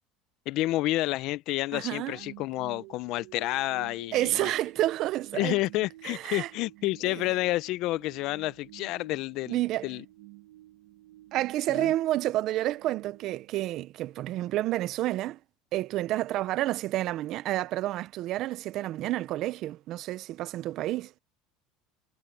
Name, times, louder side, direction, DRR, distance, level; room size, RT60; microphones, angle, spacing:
voice 1, 0.5-4.5 5.3-10.0 11.7-11.9, left 18 dB, 60° left, 0.8 m, -30 dB
voice 2, 1.7-2.2 4.1-5.6 6.0-6.5 7.0-7.2 9.5-9.9 11.3-15.4 15.7-21.1, right 15 dB, 55° right, 0.8 m, -29 dB
sound 1, 2.1-14.2, right 19 dB, 80° right, 1.7 m, -51 dB
supercardioid pair, 115°, 0 cm